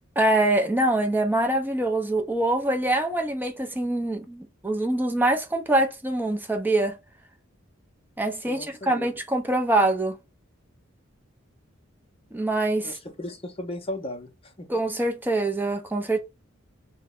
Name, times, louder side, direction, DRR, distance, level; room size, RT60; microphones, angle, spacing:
voice 1, 0.2-7.0 8.2-10.2 12.3-13.0 14.7-16.2, right 1 dB, 10° right, 0.6 m, -24 dB
voice 2, 8.5-9.1 12.8-14.7, left 1 dB, 30° left, 0.7 m, -36 dB
3.1 x 2.2 x 3.6 m
head